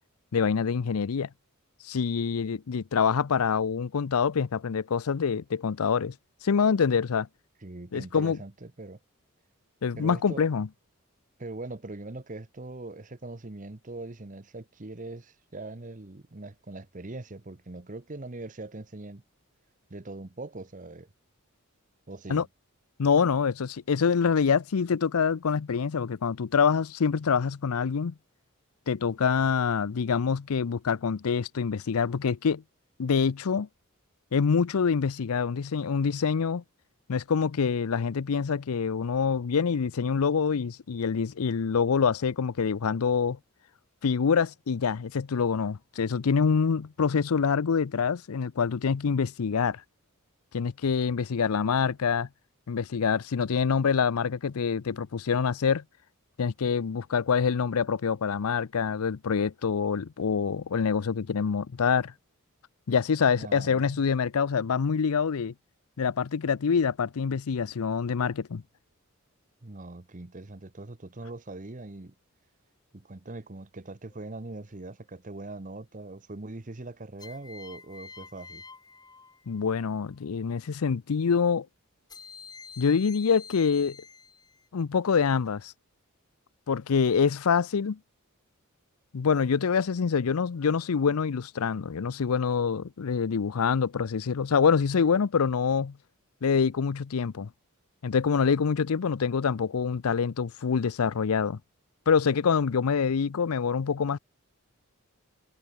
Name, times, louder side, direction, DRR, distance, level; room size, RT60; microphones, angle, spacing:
voice 1, 0.3-1.3 1.8-6.1 6.4-7.3 7.9-8.4 9.8-10.7 22.3-22.5 23.0-28.1 28.9-32.6 33.0-33.7 34.3-36.6 37.1-43.4 44.0-49.8 50.5-52.3 52.7-55.8 56.4-62.1 62.9-65.5 66.0-68.6 79.5-81.7 82.8-84.0 84.7-85.7 86.7-88.0 89.1-96.0 96.4-97.5 98.0-101.6 102.1-104.2, left 6 dB, 80° left, 0.5 m, -26 dB
voice 2, 7.6-9.0 10.0-10.5 11.4-19.2 19.9-21.1 22.1-22.4 63.4-64.0 69.6-72.1 72.9-78.6, right 2 dB, 35° right, 1.0 m, -41 dB
sound 1, 74.1-74.7 77.2-79.8 82.1-84.7, left 5 dB, 20° left, 1.8 m, -48 dB
head